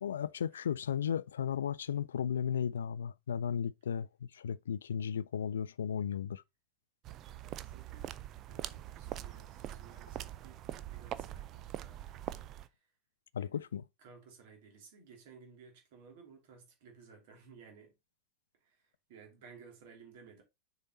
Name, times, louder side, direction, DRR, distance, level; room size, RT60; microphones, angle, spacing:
voice 1, 0.0-6.4 13.3-13.8, left 8 dB, 65° left, 0.3 m, -35 dB
sound 1, 7.0-12.7, right 12 dB, 35° right, 0.5 m, -43 dB
voice 2, 7.4-8.1 8.5-12.0 12.6-12.8 13.4-13.6 14.0-17.9 18.6-18.8 19.1-20.4, right 5 dB, 50° right, 2.8 m, -57 dB
6.6 x 4.2 x 4.0 m
figure-of-eight pair, 90°, 0 cm